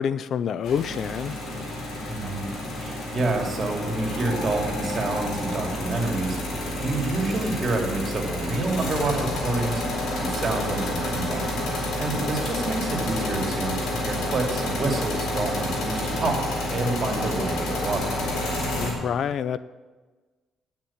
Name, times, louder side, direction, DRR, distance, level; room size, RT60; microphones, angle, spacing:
voice 1, 0.0-1.3 18.8-19.6, left 8 dB, 65° left, 16 dB, 0.3 m, -27 dB
sound 1, 0.6-18.9, left 1 dB, 80° left, 3.8 m, -29 dB
voice 2, 2.1-2.4 2.8-9.8 10.2-11.4 12.0-16.4 16.7-18.2, right 2 dB, 45° right, 1 dB, 2.7 m, -28 dB
9.4 x 7.3 x 8.6 m, 1.3 s
cardioid pair, 90°, 0 cm